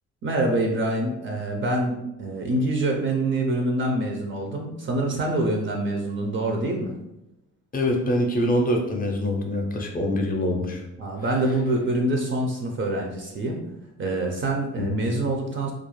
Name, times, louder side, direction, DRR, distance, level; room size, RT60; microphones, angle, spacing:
voice 1, 0.2-6.9 11.0-13.6 14.0-15.7, right 1 dB, 40° right, 1 dB, 0.4 m, -25 dB
voice 2, 7.7-10.8 14.8-14.9, left 1 dB, 30° left, 2 dB, 0.5 m, -24 dB
2.4 x 2.0 x 3.0 m, 0.89 s
cardioid pair, 90°, 30 cm